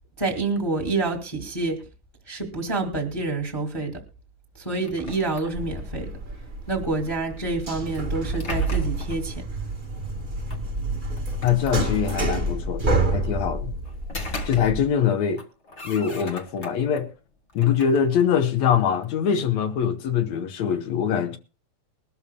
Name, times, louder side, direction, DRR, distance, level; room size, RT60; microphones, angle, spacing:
voice 1, 0.2-1.8 2.3-4.0 4.6-6.1 6.7-9.4, right 3 dB, 10° left, 1.5 m, -27 dB
sound 1, 4.8-6.0 7.9-9.3 10.5-10.6 11.2-12.3 13.8-15.1 15.4-17.0 17.5-19.1, right 2 dB, 35° left, 1.1 m, -34 dB
sound 2, 5.5-14.6, right 2 dB, 30° right, 1.0 m, -29 dB
voice 2, 11.4-12.9 13.1-13.7 14.5-15.4 15.8-17.1 17.5-21.4, left 8 dB, 65° left, 2.2 m, -23 dB
21.5 x 13.0 x 2.2 m
omnidirectional pair, 3.6 m